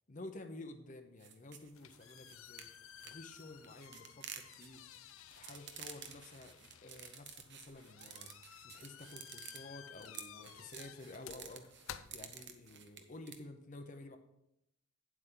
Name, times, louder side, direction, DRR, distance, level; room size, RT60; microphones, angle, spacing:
voice 1, 0.1-4.8 5.3-14.2, left 2 dB, 40° left, 6 dB, 0.7 m, -52 dB
sound 1, 1.2-13.4, right 8 dB, 55° right, 0.9 m, -51 dB
sound 2, 1.5-12.9, left 9 dB, 80° left, 0.5 m, -55 dB
9.5 x 7.8 x 3.8 m, 0.82 s
head